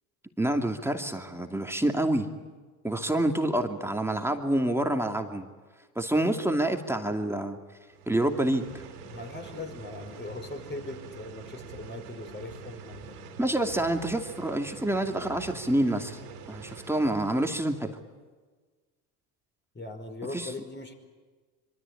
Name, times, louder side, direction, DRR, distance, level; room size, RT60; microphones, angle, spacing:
voice 1, 0.4-2.3 2.8-5.5 6.0-7.6 8.1-8.6 13.4-16.2 16.5-18.0 20.3-20.5, right 1 dB, 5° right, 4 dB, 2.6 m, -27 dB
sound 1, 7.8-17.9, right 5 dB, 75° right, 3.5 m, -45 dB
voice 2, 9.1-13.2 19.7-20.9, left 2 dB, 25° left, 5 dB, 5.2 m, -40 dB
25.5 x 24.0 x 8.7 m, 1.4 s
hypercardioid pair, 70°, 46 cm